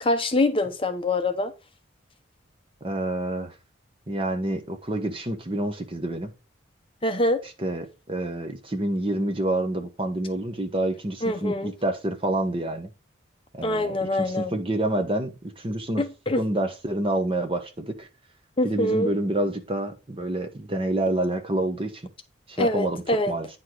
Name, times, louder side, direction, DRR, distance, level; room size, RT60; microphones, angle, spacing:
voice 1, 0.0-1.5 7.0-7.4 11.2-11.7 13.6-14.5 16.0-16.4 18.6-19.1 22.6-23.4, left 1 dB, 25° left, 0.8 m, -24 dB
voice 2, 2.8-3.5 4.1-6.3 7.6-12.9 13.5-16.0 16.4-18.1 18.6-22.0 22.5-23.5, right 1 dB, 30° right, 1.1 m, -28 dB
9.5 x 4.8 x 3.9 m
head